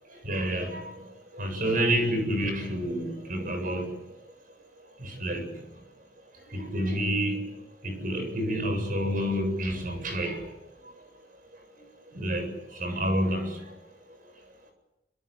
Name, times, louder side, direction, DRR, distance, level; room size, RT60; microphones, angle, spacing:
voice 1, 0.2-0.8 1.3-3.9 5.0-5.4 6.5-7.4 7.8-10.4 12.1-12.5 12.8-13.6, equal, 50° right, 6 dB, 7.7 m, -28 dB
25.5 x 25.0 x 8.4 m, 0.95 s
head